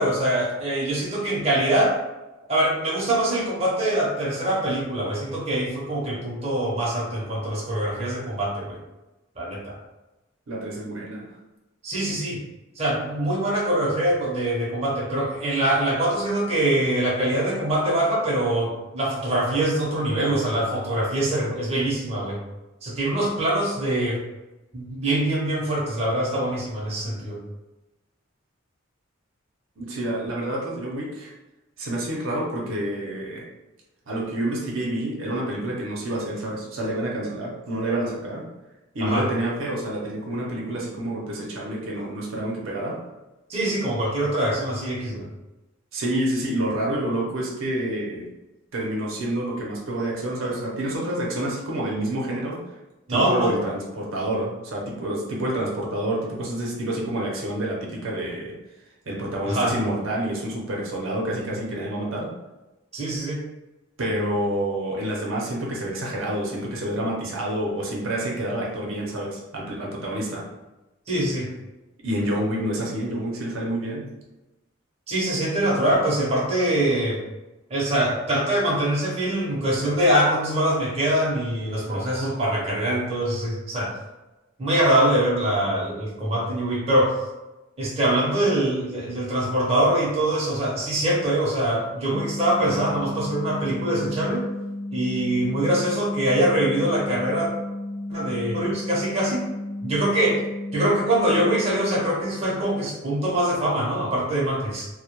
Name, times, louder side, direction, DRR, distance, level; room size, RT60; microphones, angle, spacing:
voice 1, 0.0-2.0 2.5-8.8 9.4-9.8 11.8-12.4 12.8-22.4 22.8-24.2 24.7-27.4 39.0-39.3 43.5-45.3 53.1-53.5 59.5-59.7 62.9-63.4 71.1-71.5 75.1-77.2 77.7-83.9 84.6-87.1 87.8-94.4 94.9-97.5 98.1-99.4 99.8-100.4 100.7-104.9, right 1 dB, 30° right, -5 dB, 0.6 m, -23 dB
voice 2, 10.5-11.3 29.8-31.3 31.8-33.5 34.1-38.5 38.9-43.0 45.9-48.3 48.7-52.6 53.1-58.5 59.1-62.3 64.0-70.4 72.0-74.1, right 1 dB, 75° right, -3 dB, 0.6 m, -28 dB
sound 1, 92.1-102.1, left 1 dB, 65° left, 0.4 m, -33 dB
2.1 x 2.1 x 2.9 m, 1.0 s
head